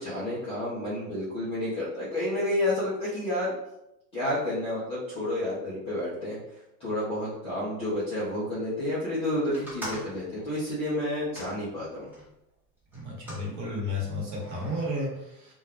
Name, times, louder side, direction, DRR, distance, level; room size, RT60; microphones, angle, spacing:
voice 1, 0.0-3.5 4.1-6.4 6.8-12.0, left 1 dB, 15° left, -11 dB, 0.4 m, -30 dB
sound 1, 9.5-12.3 12.9-13.5 14.3-14.9, equal, 5° right, 0.7 m, -42 dB
voice 2, 12.9-15.5, left 1 dB, 40° right, -3 dB, 1.1 m, -32 dB
2.3 x 2.2 x 3.4 m, 0.85 s
supercardioid pair, 130°, 49 cm